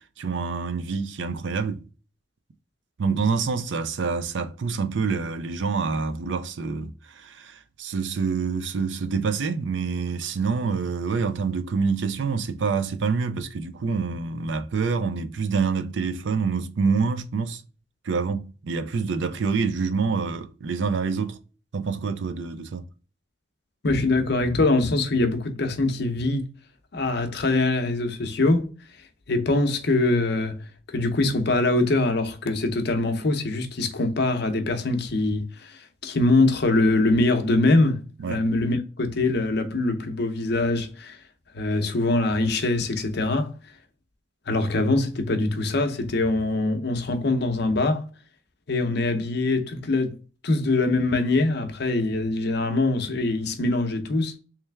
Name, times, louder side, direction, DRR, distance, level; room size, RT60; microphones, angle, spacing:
voice 1, 0.2-1.8 3.0-17.6 18.0-21.4 21.7-22.8 38.2-38.4, right 5 dB, 70° right, 0.5 m, -26 dB
voice 2, 23.8-26.5 26.9-28.7 29.3-30.6 30.9-38.0 38.3-41.2 41.5-43.5 44.5-48.1 48.7-50.1 50.4-54.4, left 2 dB, 60° left, 0.7 m, -23 dB
3.3 x 3.2 x 3.3 m
head